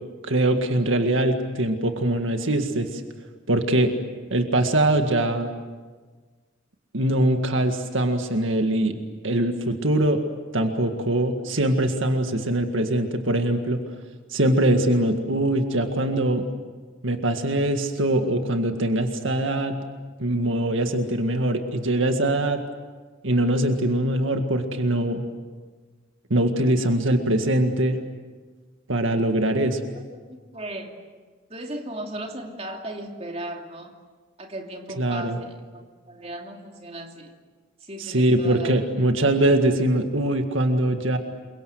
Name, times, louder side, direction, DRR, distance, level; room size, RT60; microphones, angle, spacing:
voice 1, 0.2-3.0 3.5-3.9 4.3-5.5 6.9-9.0 9.2-10.2 10.5-13.8 14.3-16.4 17.0-19.8 20.2-22.6 23.2-25.2 26.3-28.0 28.9-29.8 35.0-35.4 38.0-41.2, right 1 dB, 75° right, 5 dB, 2.0 m, -22 dB
voice 2, 30.5-31.0 31.5-33.9 34.4-37.3 37.8-38.9, right 1 dB, 30° right, 2 dB, 2.8 m, -36 dB
28.5 x 24.0 x 7.9 m, 1.4 s
head